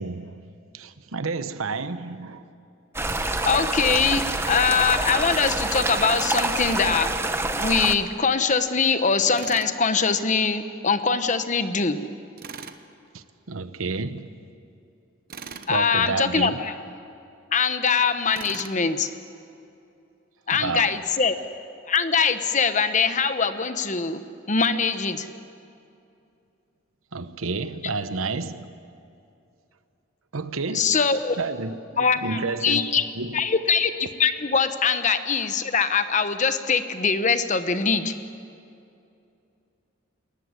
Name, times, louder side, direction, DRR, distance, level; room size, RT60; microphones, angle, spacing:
voice 1, 0.0-2.5 13.1-14.4 15.7-16.6 20.5-21.0 27.1-28.7 30.3-31.0 31.4-33.4, right 3 dB, 85° right, 1.0 m, -30 dB
sound 1, 2.9-7.9, right 2 dB, 10° right, 1.0 m, -27 dB
voice 2, 3.4-4.2 4.5-7.2 7.6-12.0 15.7-16.7 17.5-19.1 20.5-21.3 21.9-24.2 24.5-25.3 30.7-31.4 32.0-33.1 33.3-38.1, left 5 dB, 35° left, 1.0 m, -22 dB
Tools, 9.4-9.8 12.4-12.8 15.3-15.7 18.3-18.8, right 6 dB, 45° right, 1.0 m, -39 dB
27.0 x 14.5 x 9.7 m
head